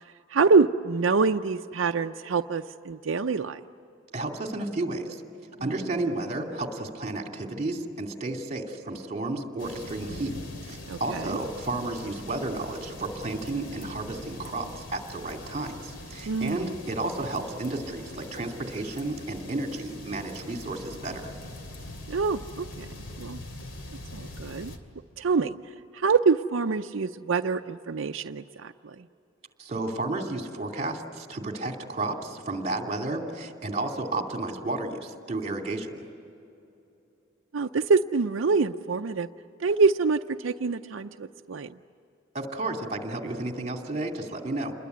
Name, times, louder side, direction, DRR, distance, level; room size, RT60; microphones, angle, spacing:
voice 1, 0.3-3.6 10.9-11.4 16.3-16.7 22.1-22.9 23.2-23.4 24.1-24.7 25.2-25.5 25.9-29.0 37.5-39.3 39.6-41.7, right 4 dB, 85° right, 7 dB, 0.6 m, -25 dB
voice 2, 4.1-5.2 5.6-10.3 10.6-21.3 29.6-36.0 42.3-44.7, right 2 dB, 35° right, 3 dB, 2.7 m, -32 dB
sound 1, 9.6-24.8, left 1 dB, 75° left, 2.6 m, -42 dB
28.0 x 21.5 x 9.6 m, 2.8 s
head